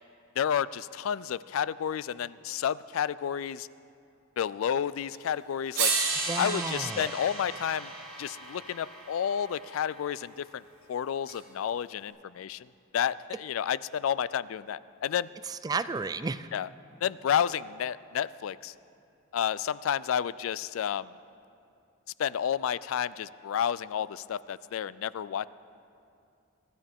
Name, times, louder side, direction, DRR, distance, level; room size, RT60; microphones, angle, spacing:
voice 1, 0.4-3.7 4.4-5.9 6.4-7.9 8.2-10.6 10.9-12.7 12.9-15.3 16.5-16.7 17.0-18.7 19.3-21.1 22.2-25.5, left 8 dB, 80° left, 19 dB, 0.3 m, -30 dB
sound 1, 5.1-5.2 5.7-9.9 11.3-11.4, right 5 dB, 70° right, 4.7 m, -33 dB
voice 2, 6.3-7.1 15.5-16.5, right 4 dB, 20° right, 13 dB, 0.3 m, -33 dB
24.5 x 13.0 x 3.6 m, 2.5 s
head